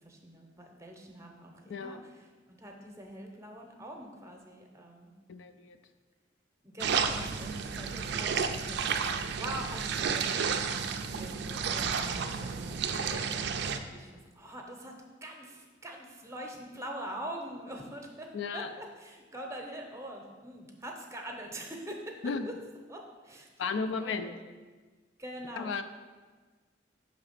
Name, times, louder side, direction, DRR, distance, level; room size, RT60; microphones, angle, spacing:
voice 1, 0.0-5.1 6.6-14.9 15.2-22.5 22.9-24.4 25.2-25.8, right 1 dB, 15° right, 2 dB, 0.7 m, -44 dB
voice 2, 1.7-2.0 5.3-5.8 18.3-18.7 22.2-22.5 23.6-24.3 25.6-25.8, left 5 dB, 85° left, 10 dB, 0.4 m, -34 dB
sound 1, 6.8-13.8, right 6 dB, 60° right, 0.3 m, -32 dB
5.8 x 3.2 x 5.7 m, 1.4 s
head